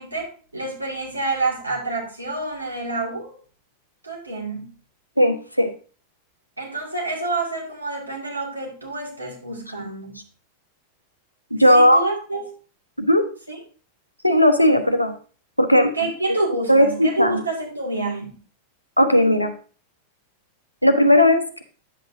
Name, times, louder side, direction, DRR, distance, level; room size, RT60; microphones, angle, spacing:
voice 1, 0.0-3.3 4.0-4.7 6.6-10.2 11.7-12.5 13.5-13.6 15.9-18.4, right 2 dB, 80° right, -1 dB, 2.2 m, -28 dB
voice 2, 5.2-5.7 11.5-12.0 13.0-13.2 14.2-15.1 15.6-15.9 16.7-17.4 19.0-19.5 20.8-21.6, left 1 dB, 90° left, 7 dB, 0.8 m, -16 dB
10.0 x 7.7 x 2.7 m, 0.40 s
figure-of-eight pair, 90°, 0 cm